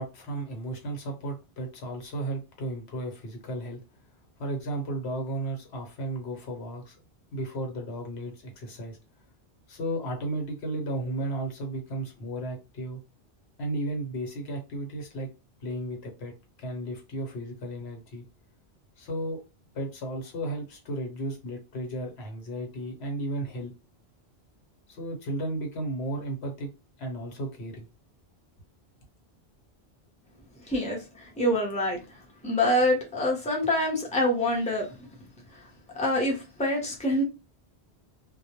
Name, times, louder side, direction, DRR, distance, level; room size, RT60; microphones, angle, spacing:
voice 1, 0.0-3.8 4.4-6.9 7.3-9.0 9.7-13.0 13.6-15.3 15.6-16.3 16.6-18.2 19.0-19.4 19.7-23.7 24.9-26.7 27.0-27.9, right 1 dB, 90° left, 3 dB, 1.1 m, -34 dB
voice 2, 30.7-32.0 32.4-34.9 35.9-37.2, left 1 dB, 10° left, -1 dB, 0.6 m, -26 dB
2.2 x 2.0 x 2.9 m, 0.28 s
omnidirectional pair, 1.1 m